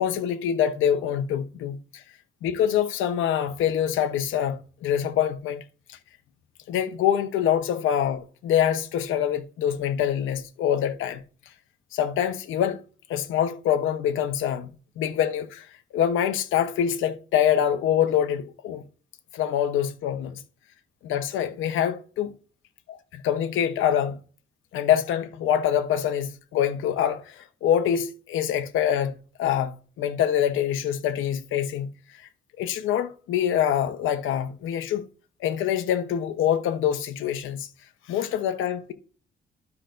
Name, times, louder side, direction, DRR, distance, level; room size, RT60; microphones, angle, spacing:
voice 1, 0.0-2.0 2.4-5.6 5.9-6.0 6.7-11.2 11.9-12.8 13.1-14.7 15.0-15.7 15.9-18.8 19.3-20.4 21.0-22.3 22.9-24.2 24.7-31.9 32.2-32.3 32.6-35.0 35.4-37.7 38.1-38.9, left 9 dB, 85° left, 0.9 m, -25 dB
12.5 x 5.8 x 2.6 m
cardioid pair, 90°, 20 cm